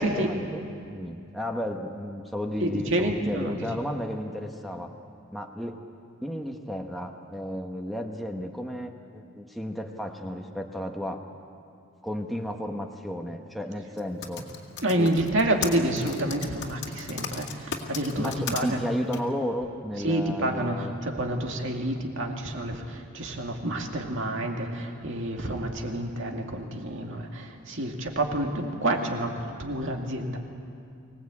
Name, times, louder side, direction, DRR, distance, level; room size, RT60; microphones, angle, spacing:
voice 1, 0.0-4.9 5.3-5.8 6.2-11.2 12.0-14.4 15.0-15.1 15.7-15.9 18.1-21.0, equal, ahead, 2 dB, 1.1 m, -33 dB
voice 2, 2.6-3.9 14.8-18.8 20.0-30.4, right 1 dB, 55° right, 2 dB, 2.3 m, -28 dB
Typing, 14.0-18.6 19.1-19.2, left 6 dB, 50° left, 2.1 m, -35 dB
24.5 x 18.5 x 8.5 m, 2.5 s
head